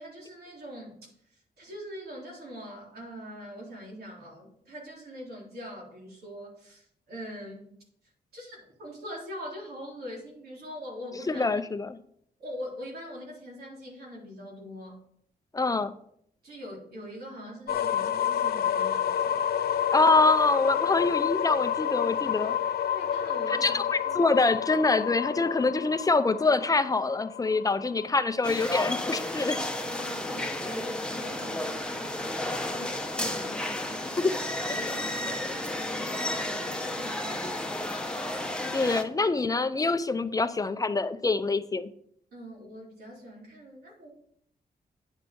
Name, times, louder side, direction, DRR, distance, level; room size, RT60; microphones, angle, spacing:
voice 1, 0.0-7.7 8.3-11.5 12.4-15.0 16.4-19.4 22.9-24.4 29.8-34.2 34.6-37.9 38.5-38.9 42.3-44.1, equal, 75° right, -4 dB, 3.7 m, -43 dB
voice 2, 11.3-11.9 15.5-15.9 19.9-22.6 23.6-23.8 24.1-29.6 34.2-34.3 38.7-41.9, left 3 dB, 20° left, 10 dB, 0.6 m, -25 dB
sound 1, 17.7-29.5, left 9 dB, 75° left, 0.5 m, -29 dB
sound 2, 28.4-39.0, left 1 dB, 5° left, 0.9 m, -32 dB
9.7 x 6.1 x 5.3 m, 0.68 s
wide cardioid pair, 120°, 16 cm